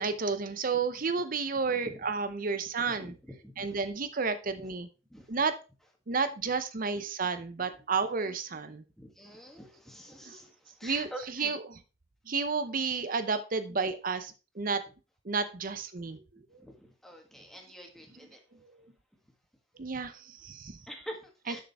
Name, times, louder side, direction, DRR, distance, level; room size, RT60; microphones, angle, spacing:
voice 1, 0.0-3.1 3.6-4.9 5.3-5.5 6.1-8.8 10.2-10.4 10.8-11.8 12.3-14.8 15.2-16.2 18.6-18.7 19.8-20.8 21.4-21.6, right 4 dB, 45° right, 11 dB, 0.7 m, -31 dB
voice 2, 1.7-2.0 2.9-3.8 4.6-4.7 5.1-5.3 9.0-11.6 16.3-18.4 20.9-21.6, equal, ahead, 2 dB, 1.6 m, -46 dB
6.9 x 6.6 x 4.2 m, 0.31 s
head